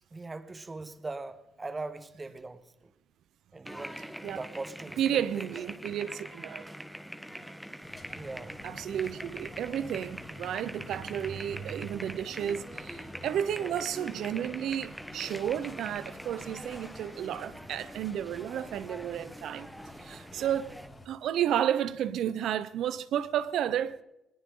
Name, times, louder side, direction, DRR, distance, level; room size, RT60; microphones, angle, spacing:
voice 1, 0.1-2.9 3.5-4.0 4.3-5.7 8.1-8.6 13.6-13.8, right 3 dB, 25° right, 1.3 m, -41 dB
sound 1, 3.7-20.9, equal, ahead, 1.2 m, -44 dB
voice 2, 5.0-6.7 8.6-19.7 20.0-20.7 21.1-24.0, right 10 dB, 75° right, 0.8 m, -32 dB
sound 2, 7.8-21.1, left 2 dB, 20° left, 2.9 m, -49 dB
20.0 x 18.0 x 3.8 m
cardioid pair, 90°, 0 cm